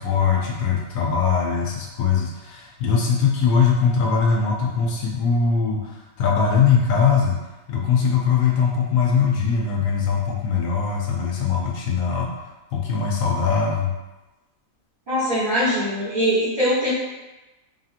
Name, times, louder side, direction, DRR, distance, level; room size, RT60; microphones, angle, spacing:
voice 1, 0.0-7.4 7.7-13.9, left 6 dB, 75° left, -2 dB, 1.0 m, -21 dB
voice 2, 15.1-16.9, equal, 40° right, -10 dB, 0.8 m, -22 dB
2.8 x 2.7 x 2.4 m, 1.1 s
omnidirectional pair, 1.5 m